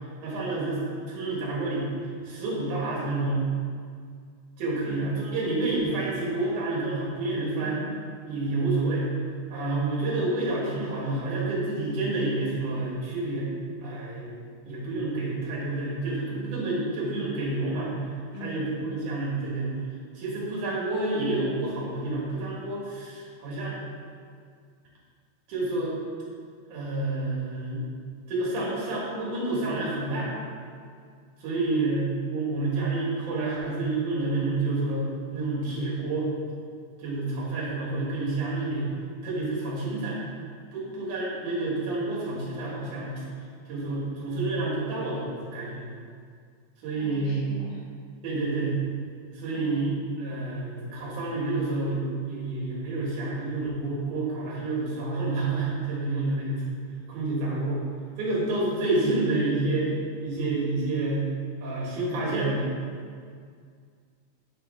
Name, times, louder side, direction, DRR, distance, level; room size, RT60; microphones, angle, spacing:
voice 1, 0.2-1.9 2.2-3.5 4.6-7.8 8.3-9.1 9.5-13.5 13.8-14.4 14.7-17.9 18.4-19.7 20.1-23.8 25.5-26.0 26.7-27.8 28.3-30.3 31.4-35.1 35.3-36.3 37.0-38.9 39.2-40.2 40.7-43.1 43.7-45.9 46.8-47.4 48.2-48.7 49.3-49.9 50.2-56.7 57.1-57.8 58.2-59.9 60.2-61.2 61.6-62.6, right 2 dB, 85° right, -6 dB, 3.2 m, -29 dB
voice 2, 7.6-7.9 18.3-18.7 46.9-47.9 49.5-49.9, left 1 dB, 70° left, -3 dB, 1.9 m, -42 dB
8.6 x 4.9 x 3.4 m, 2.1 s
omnidirectional pair, 3.4 m